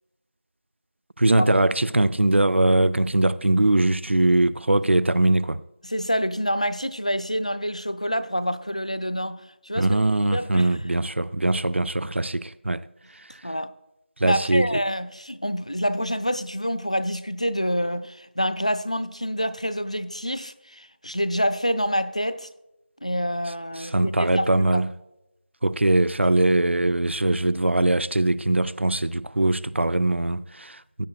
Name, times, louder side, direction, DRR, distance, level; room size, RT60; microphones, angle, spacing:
voice 1, 1.2-5.6 9.8-12.8 14.2-14.8 23.8-24.9 25.6-31.1, right 2 dB, 80° right, 0.5 m, -21 dB
voice 2, 5.8-10.0 10.3-10.7 13.4-13.7 14.2-22.5 23.0-24.8, equal, 35° left, 0.4 m, -27 dB
16.0 x 8.8 x 2.3 m
figure-of-eight pair, 180°, 6 cm